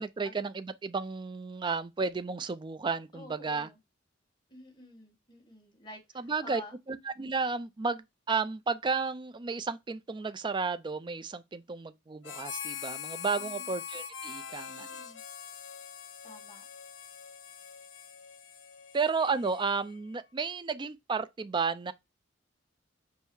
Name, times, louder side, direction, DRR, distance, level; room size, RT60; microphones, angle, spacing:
voice 1, 0.0-3.7 6.1-6.6 6.9-14.9 18.9-21.9, right 4 dB, 25° right, 0.4 m, -32 dB
voice 2, 3.1-3.8 4.5-6.7 13.4-13.7 14.7-15.2 16.2-16.6, left 1 dB, 25° left, 1.5 m, -50 dB
Harmonica, 12.2-20.0, left 8 dB, 80° left, 0.6 m, -43 dB
5.5 x 2.1 x 4.6 m
head